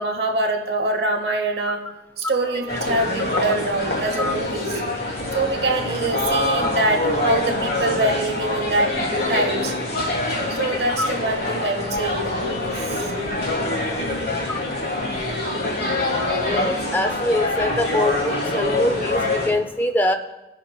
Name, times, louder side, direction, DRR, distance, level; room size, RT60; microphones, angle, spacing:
voice 1, 0.0-1.8 2.2-4.8 5.3-8.9 9.3-9.7 10.5-13.1, right 2 dB, 75° right, 4 dB, 0.9 m, -24 dB
sound 1, 2.4-8.1, equal, 35° right, 2.6 m, -39 dB
sound 2, 2.7-19.5, left 2 dB, 60° left, 1.7 m, -25 dB
voice 2, 16.4-20.1, left 1 dB, 10° left, 7 dB, 0.4 m, -23 dB
17.0 x 5.6 x 2.2 m, 1.0 s
head